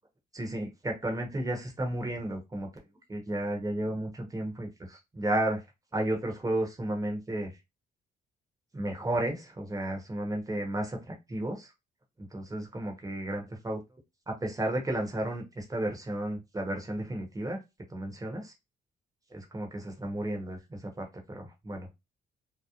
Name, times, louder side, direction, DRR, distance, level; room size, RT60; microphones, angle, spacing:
voice 1, 0.3-2.7 3.1-5.6 5.9-7.5 8.7-11.7 12.3-13.8 14.3-17.6 17.9-18.5 19.3-21.9, right 1 dB, 15° right, 2 dB, 0.9 m, -33 dB
2.9 x 2.0 x 2.4 m, 0.23 s
cardioid pair, 90°, 20 cm